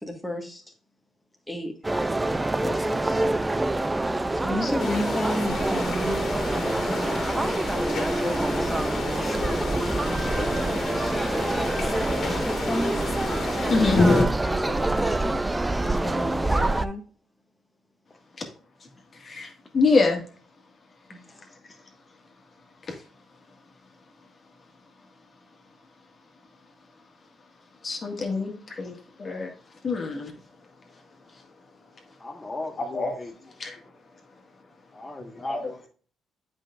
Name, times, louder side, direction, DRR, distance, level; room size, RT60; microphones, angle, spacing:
voice 1, 0.0-0.6 1.5-1.7 2.6-3.3 4.3-6.2 6.5-7.3 8.1-13.0 13.6-14.0 14.4-15.4 15.8-17.0 21.1-21.4, equal, 5° left, 1.6 m, -33 dB
sound 1, 1.8-16.9, right 2 dB, 15° right, 0.5 m, -26 dB
sound 2, 4.8-14.2, left 3 dB, 60° left, 1.9 m, -29 dB
voice 2, 13.7-14.0 19.2-20.2 22.9-23.0 27.8-28.9 29.2-29.5 29.8-30.3 32.8-33.2 33.6-33.8 35.4-35.9, left 3 dB, 40° left, 1.9 m, -25 dB
voice 3, 32.2-33.3 34.9-35.9, left 2 dB, 20° left, 1.2 m, -37 dB
8.2 x 5.3 x 2.5 m
cardioid pair, 90°, 0 cm